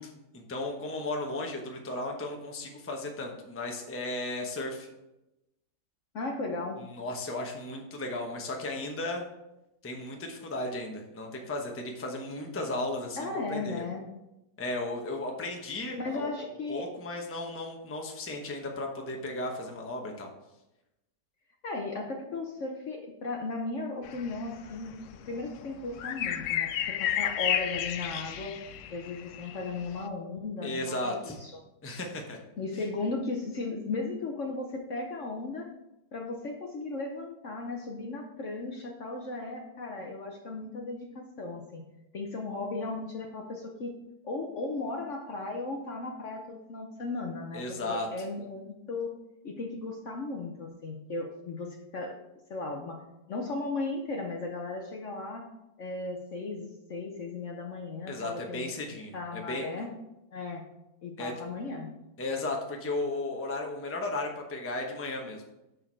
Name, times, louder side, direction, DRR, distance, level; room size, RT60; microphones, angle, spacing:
voice 1, 0.0-4.9 6.9-9.2 9.8-13.8 14.6-20.3 30.6-31.4 31.8-32.4 47.5-48.1 58.1-59.7 61.2-61.3 62.2-65.4, left 2 dB, 10° left, 1 dB, 0.7 m, -35 dB
voice 2, 6.1-6.8 13.2-14.0 16.0-16.9 21.6-24.9 25.2-26.7 27.0-28.5 28.9-31.5 32.6-35.7 36.1-41.8 42.1-43.9 44.2-49.1 49.4-52.2 52.5-53.0 53.3-55.5 55.8-59.9 60.3-60.7 61.0-61.9, left 3 dB, 55° left, 2 dB, 1.0 m, -36 dB
sound 1, 24.0-30.0, left 10 dB, 85° left, 0.6 m, -32 dB
6.6 x 6.3 x 4.5 m, 0.92 s
omnidirectional pair, 1.9 m